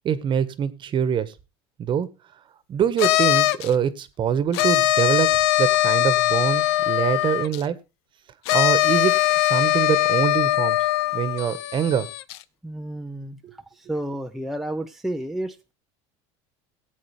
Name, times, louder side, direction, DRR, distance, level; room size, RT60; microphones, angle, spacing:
voice 1, 0.0-1.3 1.8-2.1 2.7-7.8 8.5-10.8 11.1-12.1 13.4-13.5, right 8 dB, 35° right, 15 dB, 1.4 m, -24 dB
sound 1, 3.0-3.7 4.5-7.6 8.5-12.4, left 15 dB, 80° left, 0.7 m, -21 dB
voice 2, 12.6-13.4 13.9-15.7, right 1 dB, ahead, 4 dB, 0.8 m, -31 dB
17.5 x 8.5 x 3.3 m, 0.29 s
supercardioid pair, 120°, 13 cm